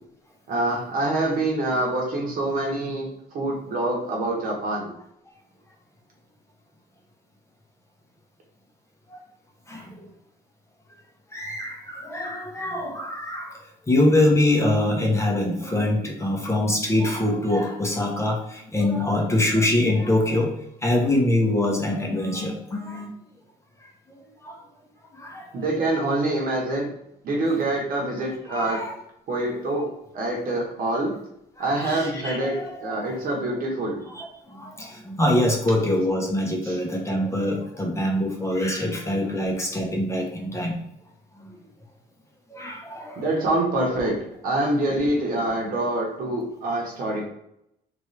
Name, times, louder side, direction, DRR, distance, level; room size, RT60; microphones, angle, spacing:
voice 1, 0.5-4.9 25.5-26.9 27.2-28.9 29.3-31.1 31.6-34.0 36.6-36.8 43.2-47.2, right 2 dB, 55° right, -1 dB, 1.0 m, -26 dB
voice 2, 9.7-10.0 11.3-20.5 20.8-23.1 24.4-24.6 25.1-25.5 25.8-25.9 28.5-28.9 29.6-29.7 31.6-33.2 34.1-40.8 41.4-41.5 42.5-43.2, left 1 dB, 15° left, 0 dB, 0.8 m, -24 dB
3.2 x 2.6 x 3.2 m, 0.78 s
cardioid pair, 110°, 17 cm